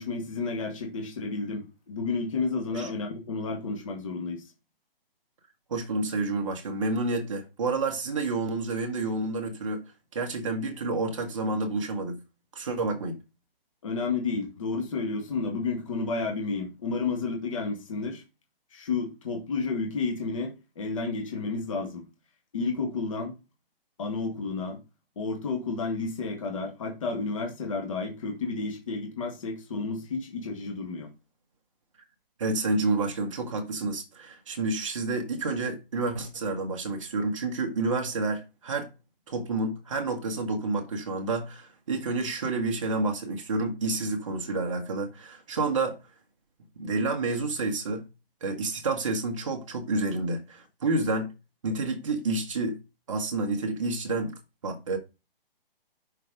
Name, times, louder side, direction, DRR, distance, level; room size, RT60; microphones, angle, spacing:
voice 1, 0.0-4.4 13.8-18.2 18.7-22.0 22.5-23.3 24.0-24.8 25.2-31.1, left 4 dB, 35° left, 1.8 m, -31 dB
voice 2, 5.7-9.8 10.1-12.2 12.5-13.2 32.4-38.9 39.3-46.0 46.8-48.1 48.4-51.3 51.6-52.8 53.1-54.4 54.6-55.0, right 3 dB, 30° right, 1.4 m, -29 dB
6.5 x 4.6 x 4.9 m
hypercardioid pair, 170°, 30 cm